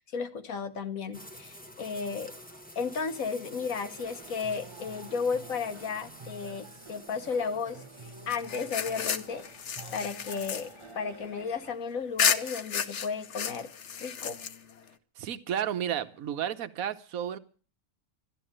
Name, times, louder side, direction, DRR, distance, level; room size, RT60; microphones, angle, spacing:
voice 1, 0.0-2.3 2.7-9.4 9.9-13.7 14.0-14.4, left 5 dB, 80° left, 9 dB, 1.6 m, -34 dB
sound 1, 1.1-9.5, equal, 5° left, 1.2 m, -50 dB
sound 2, 4.0-11.7, right 4 dB, 25° right, 0.8 m, -49 dB
sound 3, 8.3-11.7 12.2-14.9, left 7 dB, 60° left, 1.2 m, -32 dB
voice 2, 15.2-17.4, right 9 dB, 85° right, 12 dB, 1.3 m, -32 dB
12.5 x 12.0 x 8.8 m, 0.42 s
omnidirectional pair, 1.4 m